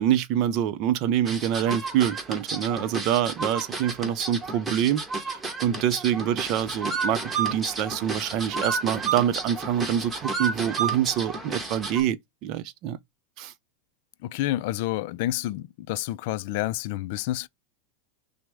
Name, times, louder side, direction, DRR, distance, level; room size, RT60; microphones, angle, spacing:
voice 1, 0.0-13.0 13.4-13.5, right 10 dB, 50° right, 0.5 m, -26 dB
sound 1, 1.3-12.0, right 4 dB, 15° right, 1.1 m, -31 dB
voice 2, 14.2-17.5, left 15 dB, 65° left, 0.3 m, -29 dB
6.0 x 2.1 x 3.4 m
supercardioid pair, 120°, 0 cm